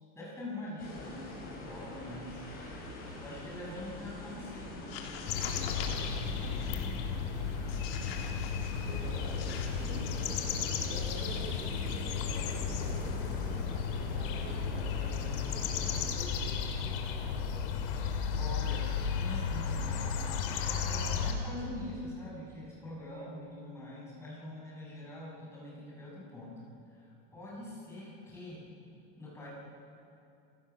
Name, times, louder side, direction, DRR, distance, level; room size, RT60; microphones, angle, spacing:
voice 1, 0.1-2.4 3.2-6.8 8.9-9.0 9.7-10.0 18.4-26.6 26.9-28.7 29.2-29.5, left 1 dB, 10° left, -5 dB, 6.6 m, -44 dB
sound 1, 0.8-16.1, left 1 dB, 30° left, 5.9 m, -44 dB
sound 2, 4.7-6.1 6.6-7.0 7.7-8.9 9.3-9.7, left 7 dB, 85° left, 3.1 m, -45 dB
sound 3, 5.3-21.3, left 6 dB, 65° left, 2.6 m, -34 dB
voice 2, 8.8-9.6 9.8-10.4 10.9-13.1 14.1-17.8, right 3 dB, 25° right, -2 dB, 3.4 m, -48 dB
28.0 x 16.5 x 7.1 m, 2.6 s
supercardioid pair, 160°, 29 cm